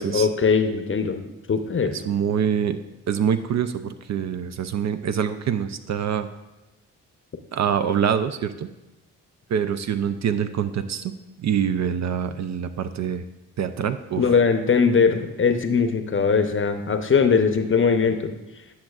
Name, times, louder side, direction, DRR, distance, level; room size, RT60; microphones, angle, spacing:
voice 1, 0.0-1.9 14.2-18.3, left 5 dB, 35° left, 8 dB, 0.7 m, -21 dB
voice 2, 1.9-2.8 3.1-6.3 7.5-8.7 9.5-11.1 11.4-13.2 13.6-14.3, right 8 dB, 45° right, 10 dB, 0.5 m, -25 dB
10.0 x 6.0 x 2.4 m, 1.0 s
supercardioid pair, 55°, 38 cm